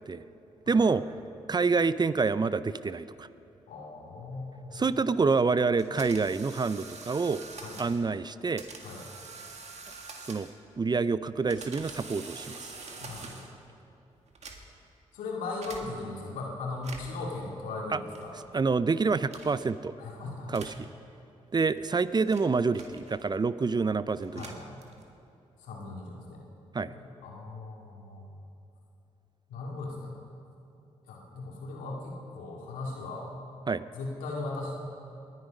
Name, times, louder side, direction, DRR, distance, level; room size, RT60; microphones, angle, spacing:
voice 1, 0.7-1.1 1.5-3.3 4.7-7.4 7.8-8.6 10.3-10.5 10.8-12.7 17.9-18.0 18.5-19.9 20.5-20.9 21.5-24.6 26.7-26.9 33.7-33.8, right 4 dB, 30° right, 15 dB, 0.5 m, -27 dB
voice 2, 3.7-4.8 7.6-7.9 8.8-9.0 13.0-13.4 15.1-18.3 20.0-20.7 24.3-24.8 25.6-26.4 26.8-28.3 29.5-30.2 31.1-33.3 33.9-34.7, left 3 dB, 85° left, -1 dB, 2.3 m, -38 dB
sound 1, 5.8-8.0 8.6-10.7 11.3-13.6 14.3-14.9 15.6-15.8 16.7-17.3 18.1-18.5 19.3-19.7 20.5-20.8 21.6-23.4 24.1-25.2, right 4 dB, 55° right, 1.9 m, -46 dB
20.0 x 10.5 x 5.3 m, 2.9 s
supercardioid pair, 45°, 14 cm